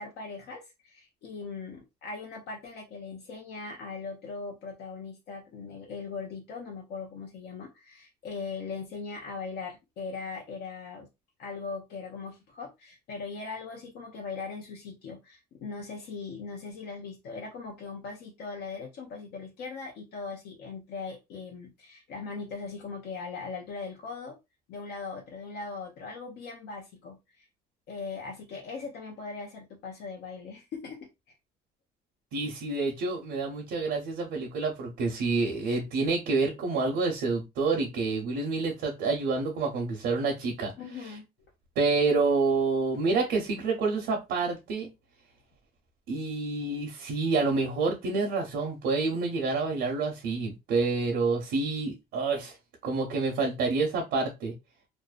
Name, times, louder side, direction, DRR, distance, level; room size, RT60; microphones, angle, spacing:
voice 1, 0.0-11.1 11.4-24.4 24.7-27.5 27.9-31.1 40.8-41.3, left 4 dB, 75° left, 1 dB, 0.6 m, -40 dB
voice 2, 32.3-40.7 41.8-44.9 46.1-52.5 52.8-54.5, right 3 dB, 85° right, 2 dB, 0.7 m, -28 dB
2.6 x 2.1 x 2.3 m, 0.23 s
cardioid pair, 110°, 17 cm